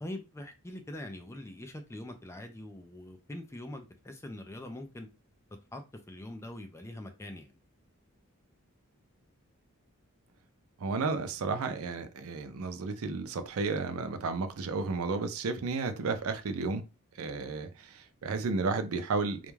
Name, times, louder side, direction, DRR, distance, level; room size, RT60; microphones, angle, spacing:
voice 1, 0.0-5.1 5.7-7.5, left 1 dB, 15° left, 0.4 m, -43 dB
voice 2, 10.8-16.8 17.2-19.5, right 4 dB, 75° right, 0.5 m, -32 dB
2.3 x 2.2 x 3.1 m
head